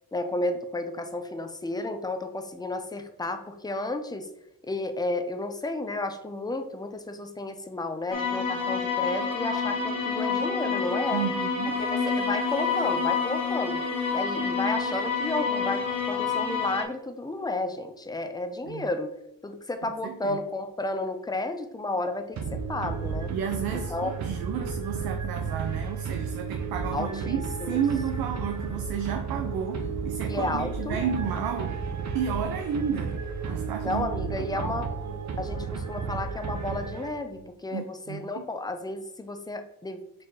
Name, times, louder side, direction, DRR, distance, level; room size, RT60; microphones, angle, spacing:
voice 1, 0.1-4.3 4.6-11.2 11.8-13.8 14.1-19.1 19.4-23.3 23.7-24.1 26.9-27.8 30.3-31.0 33.8-34.9 35.4-40.0, left 2 dB, 10° left, 7 dB, 0.6 m, -32 dB
sound 1, 8.1-16.8, left 5 dB, 65° left, 1.6 m, -28 dB
voice 2, 11.1-11.8 18.7-18.8 20.0-20.4 23.3-31.8 32.1-34.1 34.4-34.7 37.7-38.4, right 7 dB, 80° right, 5 dB, 0.7 m, -32 dB
sound 2, 22.3-37.4, right 5 dB, 50° right, 0.8 m, -33 dB
4.5 x 4.3 x 4.8 m, 0.81 s
cardioid pair, 115°, 35 cm